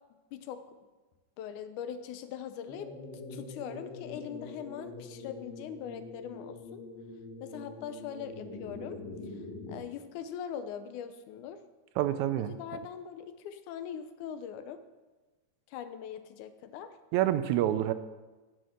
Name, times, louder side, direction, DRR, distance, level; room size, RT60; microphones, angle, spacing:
voice 1, 0.3-0.6 1.4-2.9 3.3-6.8 7.4-9.4 9.7-11.6 12.4-14.8 15.7-17.0, left 8 dB, 85° left, 10 dB, 2.2 m, -41 dB
sound 1, 2.7-9.8, left 2 dB, 45° left, 1.7 m, -44 dB
voice 2, 12.0-12.5 17.1-17.9, right 12 dB, 80° right, 12 dB, 1.9 m, -27 dB
9.5 x 6.4 x 7.8 m, 1.2 s
omnidirectional pair, 3.5 m